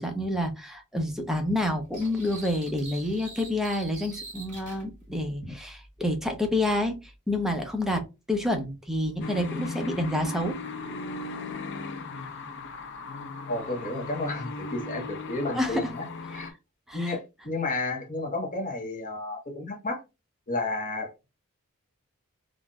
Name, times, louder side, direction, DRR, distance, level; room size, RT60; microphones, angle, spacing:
voice 1, 0.0-7.0 7.3-8.0 8.3-10.6 15.5-15.9 16.3-16.5 16.9-17.1, left 1 dB, ahead, 0.6 m, -28 dB
sound 1, 1.9-4.8, right 3 dB, 35° right, 1.9 m, -44 dB
sound 2, 9.2-16.5, left 3 dB, 55° left, 0.6 m, -37 dB
voice 2, 13.5-16.5 16.9-20.0 20.5-21.3, left 2 dB, 35° left, 1.0 m, -32 dB
3.9 x 2.5 x 2.2 m
head